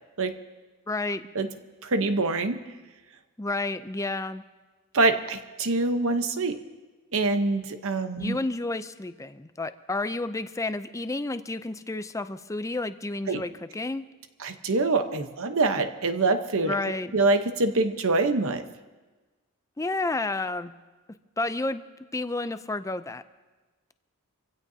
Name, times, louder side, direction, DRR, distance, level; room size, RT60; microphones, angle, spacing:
voice 1, 0.9-1.2 3.4-4.4 8.2-14.0 16.6-17.1 19.8-20.7 21.4-21.8 22.1-23.2, left 2 dB, 15° left, 11 dB, 0.5 m, -30 dB
voice 2, 1.8-2.6 4.9-6.6 7.1-8.4 13.3-13.4 14.4-16.8 17.1-18.6, right 3 dB, 60° right, 8 dB, 1.0 m, -25 dB
25.5 x 16.0 x 2.8 m, 1.3 s
head